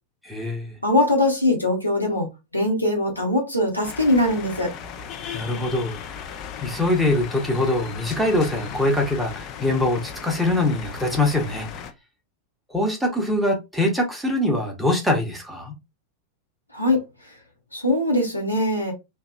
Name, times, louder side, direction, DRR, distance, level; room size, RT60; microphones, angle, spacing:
voice 1, 0.2-0.7 5.3-11.7 12.7-15.7, left 1 dB, ahead, 0.8 m, -23 dB
voice 2, 0.8-2.3 2.5-4.7 16.7-17.0 17.7-18.9, left 1 dB, 85° left, 0.9 m, -21 dB
sound 1, 3.8-11.9, left 7 dB, 35° left, 0.4 m, -36 dB
2.8 x 2.2 x 2.4 m
figure-of-eight pair, 90°, 0 cm